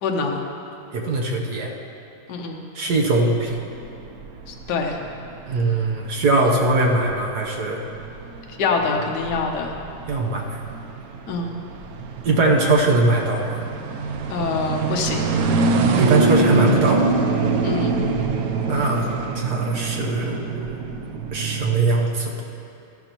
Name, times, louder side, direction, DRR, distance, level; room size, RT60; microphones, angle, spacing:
voice 1, 0.0-0.4 2.3-2.6 4.5-5.0 8.6-9.7 11.3-11.5 14.3-15.3 17.6-18.0, left 4 dB, 60° left, 1 dB, 1.4 m, -25 dB
voice 2, 0.9-1.7 2.7-3.6 5.5-7.8 10.1-10.4 12.2-13.6 16.0-17.1 18.7-20.9 21.3-22.4, right 2 dB, 55° right, 0 dB, 1.4 m, -21 dB
sound 1, 2.9-21.9, right 4 dB, 80° right, 0.8 m, -25 dB
13.5 x 12.0 x 3.0 m, 2.8 s
omnidirectional pair, 2.3 m